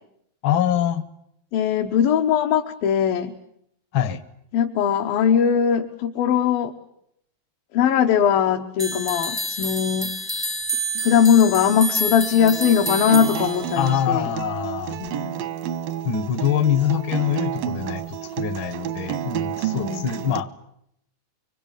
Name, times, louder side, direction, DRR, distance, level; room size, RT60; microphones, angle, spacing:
voice 1, 0.4-1.0 3.9-4.2 13.8-15.0 16.0-20.5, left 9 dB, 65° left, 14 dB, 1.2 m, -24 dB
voice 2, 1.5-3.3 4.5-6.7 7.7-10.1 11.0-14.3 15.0-15.4 19.7-20.3, left 8 dB, 85° left, 3 dB, 3.0 m, -20 dB
sound 1, 8.8-14.0, right 1 dB, 20° left, 0.5 m, -28 dB
Acoustic guitar, 12.4-20.4, right 10 dB, 85° right, 3.0 m, -30 dB
25.0 x 24.0 x 8.9 m, 0.74 s
omnidirectional pair, 4.0 m